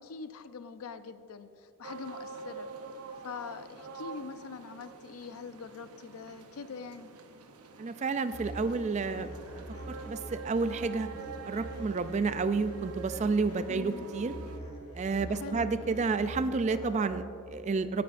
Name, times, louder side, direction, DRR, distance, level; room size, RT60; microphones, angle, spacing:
voice 1, 0.0-2.7 3.2-7.1 13.7-14.1 15.3-15.8, left 5 dB, 75° left, 11 dB, 0.5 m, -43 dB
sound 1, 1.8-14.6, right 5 dB, 80° right, 0.8 m, -46 dB
voice 2, 7.8-9.3 9.9-11.1 11.5-14.3 14.9-18.0, right 4 dB, 30° right, 12 dB, 0.3 m, -30 dB
sound 2, 8.3-17.0, right 1 dB, 30° left, 1.4 m, -44 dB
17.0 x 9.3 x 2.5 m, 2.4 s
head